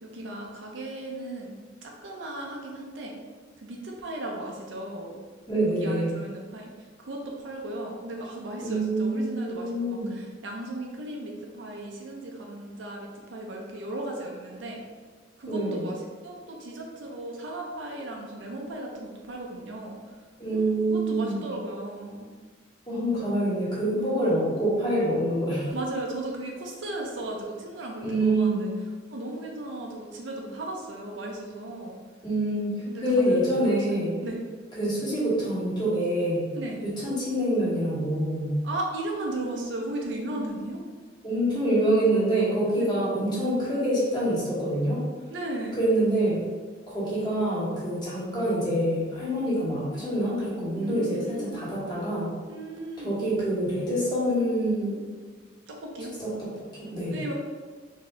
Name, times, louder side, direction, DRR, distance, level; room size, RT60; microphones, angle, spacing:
voice 1, 0.0-1.6 1.8-3.1 3.6-5.2 5.7-6.7 7.0-14.8 15.4-16.0 16.2-20.2 20.5-22.3 23.9-24.1 25.7-28.7 29.1-32.0 32.9-34.0 34.2-34.4 36.5-36.8 38.6-40.8 42.8-42.9 45.3-45.8 50.8-51.6 52.5-53.1 55.7-56.1 57.1-57.3, right 1 dB, 85° right, 0 dB, 0.6 m, -36 dB
voice 2, 5.5-6.1 8.6-10.1 15.5-15.9 20.4-21.4 22.9-25.7 28.0-28.6 32.2-34.2 34.8-36.5 36.8-38.6 41.2-45.0 45.8-46.4 46.9-52.3 53.0-55.0 56.2-57.2, right 1 dB, 25° left, -9 dB, 1.4 m, -26 dB
4.3 x 2.7 x 3.3 m, 1.5 s
head